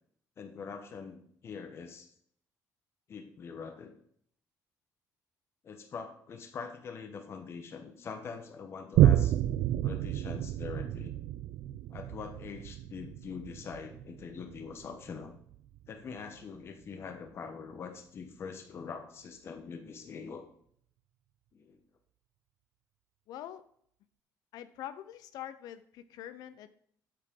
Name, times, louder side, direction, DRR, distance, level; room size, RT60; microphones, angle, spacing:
voice 1, 0.4-2.1 3.1-3.9 5.6-9.4 9.8-11.1 11.9-15.3 15.9-20.4 21.5-21.8, left 5 dB, 40° left, 6 dB, 1.1 m, -43 dB
Boom, 8.9-15.9 16.4-16.5, right 12 dB, 80° right, 0.4 m, -30 dB
voice 2, 23.3-23.6 24.5-26.7, left 11 dB, 80° left, 13 dB, 0.6 m, -44 dB
8.8 x 7.5 x 3.8 m, 0.63 s
cardioid pair, 150°, 7 cm